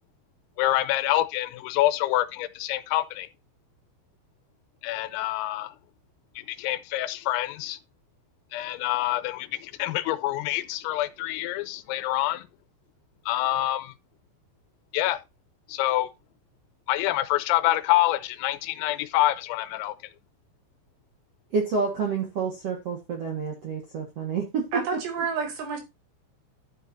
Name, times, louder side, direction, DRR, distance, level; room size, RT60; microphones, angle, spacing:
voice 1, 0.6-3.3 4.8-5.8 6.4-7.8 8.5-12.5 13.3-13.9 14.9-15.2 15.7-16.1 16.9-20.0, left 15 dB, 85° left, 3.4 m, -26 dB
voice 2, 21.5-24.7, right 5 dB, 80° right, 1.4 m, -28 dB
voice 3, 24.7-25.8, right 5 dB, 60° right, 4.3 m, -29 dB
12.5 x 7.5 x 2.7 m
omnidirectional pair, 6.0 m